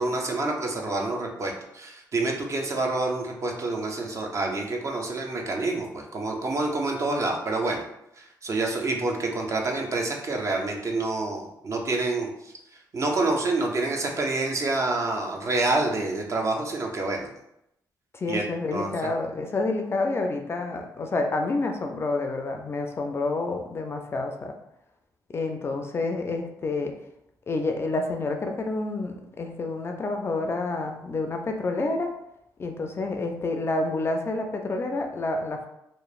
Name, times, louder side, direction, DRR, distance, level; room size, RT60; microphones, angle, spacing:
voice 1, 0.0-7.8 8.2-12.5 12.9-17.3 18.3-18.4 18.7-18.9, right 2 dB, 40° right, 1 dB, 0.5 m, -27 dB
voice 2, 18.1-24.5 25.3-26.9 27.5-32.1 32.6-35.7, left 3 dB, 35° left, 4 dB, 0.3 m, -28 dB
3.0 x 2.0 x 2.3 m, 0.80 s
cardioid pair, 85°, 7 cm